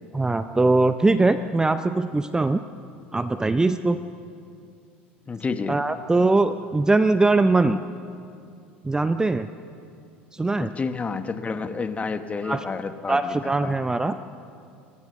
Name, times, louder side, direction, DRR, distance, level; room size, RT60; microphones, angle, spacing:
voice 1, 0.1-2.6 3.1-4.0 5.7-7.8 8.8-9.5 10.3-10.7 12.4-12.6 13.1-14.2, right 2 dB, 10° right, 11 dB, 0.6 m, -21 dB
voice 2, 5.3-5.8 10.6-13.7, left 4 dB, 20° left, 9 dB, 1.4 m, -30 dB
29.5 x 15.0 x 6.9 m, 2.5 s
figure-of-eight pair, 70°, 6 cm